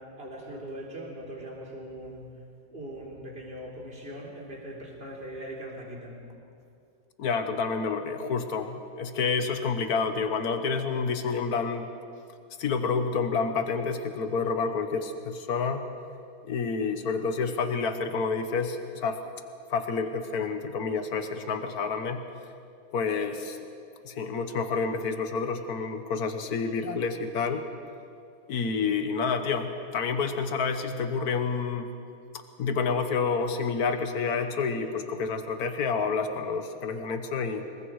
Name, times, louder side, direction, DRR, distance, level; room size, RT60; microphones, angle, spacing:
voice 1, 0.0-2.4 2.7-6.2, right 1 dB, 40° right, -2 dB, 3.8 m, -40 dB
voice 2, 7.2-11.8 12.6-15.8 16.4-19.2 19.7-22.3 22.9-23.6 24.0-27.7 28.5-32.0 32.6-37.7, left 5 dB, 85° left, 8 dB, 1.6 m, -29 dB
26.5 x 21.5 x 4.8 m, 2.4 s
omnidirectional pair, 1.6 m